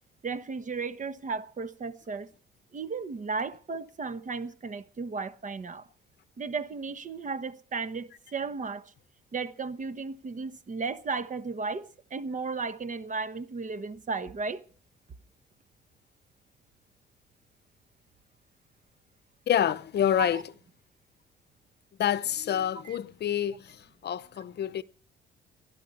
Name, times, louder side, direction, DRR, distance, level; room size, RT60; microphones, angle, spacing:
voice 1, 0.2-2.3 2.7-5.9 6.4-8.8 9.3-14.6 20.2-20.4 22.9-23.0, right 4 dB, 40° right, 1.2 m, -35 dB
voice 2, 19.5-20.4 22.0-24.8, left 10 dB, 55° left, 0.7 m, -27 dB
20.5 x 12.0 x 4.3 m
cardioid pair, 90°, 20 cm